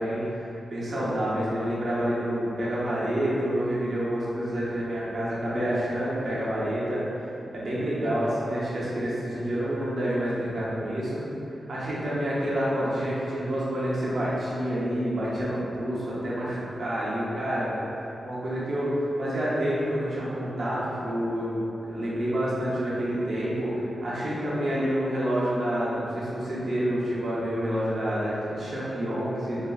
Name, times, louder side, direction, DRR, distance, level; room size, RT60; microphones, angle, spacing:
voice 1, 0.0-7.3 7.5-11.3 11.7-17.7 18.2-21.6 21.9-29.7, equal, 55° right, -8 dB, 0.8 m, -28 dB
4.1 x 2.5 x 2.3 m, 2.9 s
wide cardioid pair, 135°, 0 cm